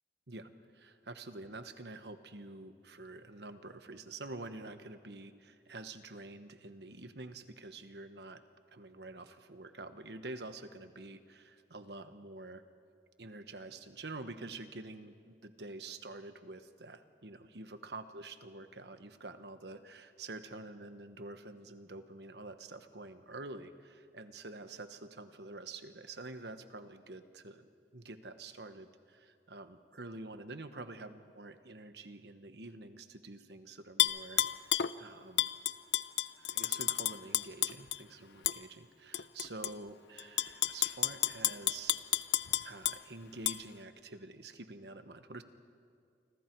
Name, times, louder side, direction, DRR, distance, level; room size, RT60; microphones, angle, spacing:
voice 1, 0.3-8.4 8.7-12.6 13.2-35.5 36.4-42.0 42.6-45.4, right 2 dB, 75° right, 9 dB, 1.2 m, -47 dB
Tap / Glass, 34.0-34.9 35.4-38.0 38.5-38.6 39.1-39.7 40.2-43.0 43.5-43.6, left 13 dB, 80° left, 0.6 m, -31 dB
28.5 x 25.5 x 4.7 m, 2.2 s
head